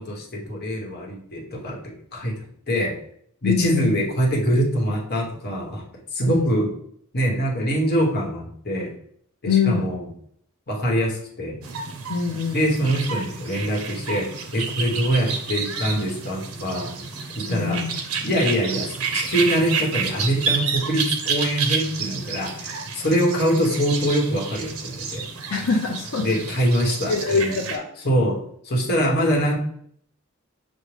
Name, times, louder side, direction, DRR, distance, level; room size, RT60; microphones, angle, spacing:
voice 1, 0.0-3.0 3.4-5.8 6.1-6.7 7.1-8.9 9.4-10.1 10.7-11.6 12.5-16.9 17.3-17.8 18.2-18.9 19.1-25.2 26.2-27.5 28.0-29.6, equal, 50° left, -2 dB, 1.0 m, -24 dB
voice 2, 3.4-3.9 6.3-6.4 9.5-9.9 12.1-12.7 17.4-18.0 25.5-26.4 27.1-27.8, left 5 dB, 75° left, 0 dB, 0.5 m, -24 dB
sound 1, 11.6-27.8, right 5 dB, 90° right, 0.6 m, -30 dB
6.2 x 2.1 x 3.2 m, 0.65 s
head